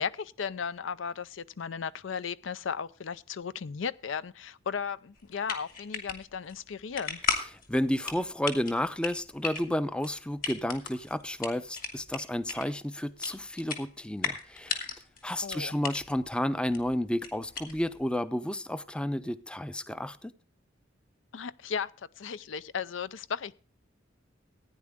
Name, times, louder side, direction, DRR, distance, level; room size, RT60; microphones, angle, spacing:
voice 1, 0.0-7.2 15.4-15.8 21.3-21.9 22.2-23.5, left 6 dB, 75° left, 0.5 m, -35 dB
sound 1, 5.2-18.1, left 5 dB, 45° left, 2.2 m, -38 dB
voice 2, 7.7-14.8 15.2-20.3, left 1 dB, 5° left, 0.5 m, -31 dB
15.5 x 9.6 x 3.6 m
head